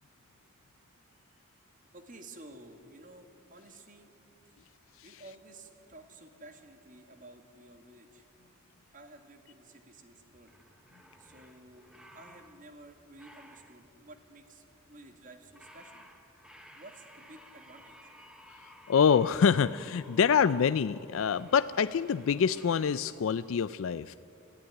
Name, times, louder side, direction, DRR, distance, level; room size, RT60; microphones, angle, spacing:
voice 1, 1.8-4.1 5.0-8.2 8.9-10.5 11.2-16.1 16.8-18.1, right 2 dB, 40° right, 7 dB, 1.8 m, -53 dB
sound 1, 10.3-23.0, equal, 5° right, 1.6 m, -56 dB
voice 2, 18.6-24.1, left 6 dB, 70° left, 14 dB, 0.4 m, -26 dB
19.5 x 14.5 x 9.6 m, 2.8 s
head